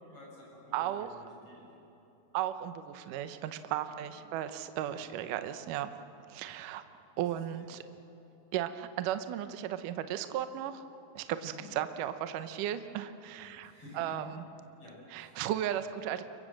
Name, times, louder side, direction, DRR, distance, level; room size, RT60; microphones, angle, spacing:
voice 1, 0.1-1.6 3.9-4.0 4.9-5.1 7.5-7.6 11.4-11.6 13.6-14.2 14.8-15.4, left 1 dB, 35° left, -3 dB, 7.6 m, -52 dB
voice 2, 0.7-1.1 2.3-5.9 6.3-6.8 7.2-7.8 8.5-10.8 11.2-14.4 15.1-16.2, right 11 dB, 75° right, 10 dB, 2.1 m, -35 dB
29.5 x 24.0 x 7.6 m, 2.9 s
omnidirectional pair, 4.6 m